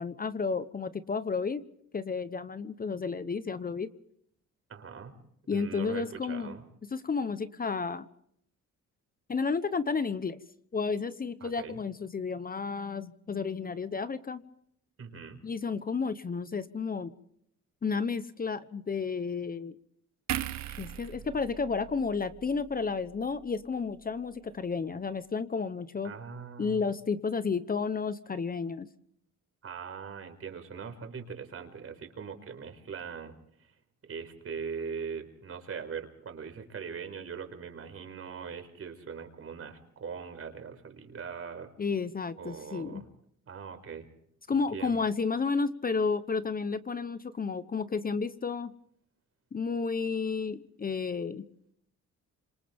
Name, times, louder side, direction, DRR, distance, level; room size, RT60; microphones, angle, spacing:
voice 1, 0.0-1.6 1.9-3.9 5.5-6.5 6.9-8.1 9.3-10.4 10.7-14.4 15.4-17.1 17.8-19.8 20.7-26.1 26.6-28.9 41.8-43.0 44.5-48.7 49.5-51.4, left 5 dB, 30° left, 13 dB, 1.0 m, -32 dB
voice 2, 4.7-5.2 5.5-6.6 11.4-11.8 15.0-15.4 26.0-26.9 29.6-33.3 34.0-41.7 42.4-43.1 43.5-44.1 44.5-45.0, right 6 dB, 50° right, 7 dB, 4.8 m, -41 dB
sound 1, 20.3-23.7 24.0-24.2, right 11 dB, 65° right, 1.0 m, -39 dB
28.5 x 26.5 x 3.6 m, 0.69 s
cardioid pair, 90°, 30 cm